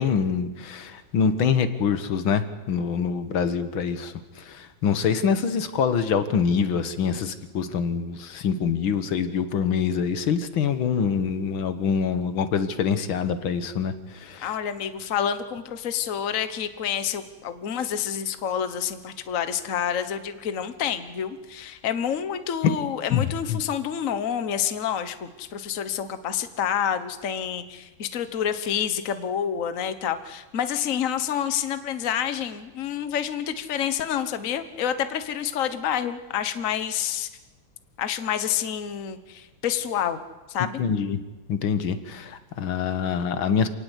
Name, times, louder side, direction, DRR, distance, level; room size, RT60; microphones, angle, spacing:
voice 1, 0.0-14.5 22.6-22.7 23.1-23.6 40.6-41.2 41.5-43.7, left 6 dB, 80° left, 11 dB, 2.1 m, -25 dB
voice 2, 14.4-37.3 38.0-40.2 40.5-40.8, left 9 dB, 45° left, 11 dB, 1.4 m, -28 dB
27.0 x 18.5 x 8.2 m, 1.1 s
omnidirectional pair, 2.2 m